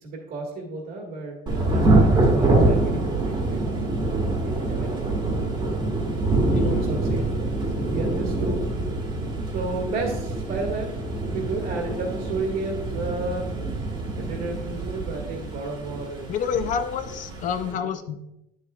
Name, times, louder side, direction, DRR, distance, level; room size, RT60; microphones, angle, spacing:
voice 1, 0.0-3.7 4.4-5.0 6.6-7.3 7.8-8.6 9.5-13.5 14.2-16.3 17.7-17.9, right 3 dB, 55° right, -2 dB, 1.9 m, -32 dB
Thunder / Rain, 1.5-17.7, right 2 dB, 20° right, 1.6 m, -25 dB
voice 2, 6.5-6.8 16.3-18.3, left 7 dB, 40° left, 9 dB, 0.6 m, -28 dB
9.9 x 7.2 x 2.4 m, 0.87 s
cardioid pair, 165°, 20 cm